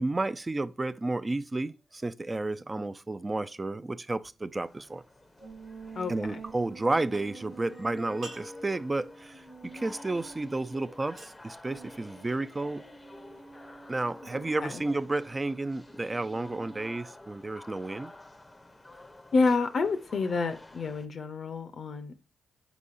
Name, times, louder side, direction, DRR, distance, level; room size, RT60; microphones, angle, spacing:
voice 1, 0.0-5.0 6.1-12.8 13.9-18.1, right 2 dB, 30° right, 0.4 m, -32 dB
sound 1, 4.6-21.1, left 2 dB, 20° left, 0.6 m, -51 dB
sound 2, 5.4-11.1 11.6-17.0, right 4 dB, 90° right, 1.6 m, -49 dB
sound 3, 5.6-15.2, right 3 dB, 75° right, 0.9 m, -56 dB
voice 2, 6.0-6.4 14.3-14.8 19.3-22.2, left 4 dB, 60° left, 0.5 m, -29 dB
4.6 x 4.0 x 2.4 m
supercardioid pair, 45°, 0 cm